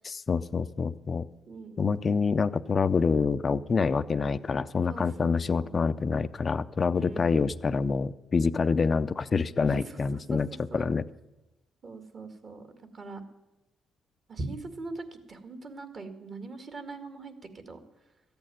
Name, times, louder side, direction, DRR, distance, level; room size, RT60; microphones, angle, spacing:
voice 1, 0.1-1.2 1.8-10.5 10.7-11.1, left 5 dB, 35° left, 12 dB, 0.5 m, -26 dB
voice 2, 1.5-2.0 4.9-5.8 6.9-7.4 9.6-10.0 10.3-10.4 10.7-10.9 11.8-13.2 14.3-17.3 17.7-17.8, right 3 dB, 45° right, 8 dB, 2.1 m, -41 dB
14.0 x 8.7 x 9.1 m, 1.0 s
cardioid pair, 90°, 0 cm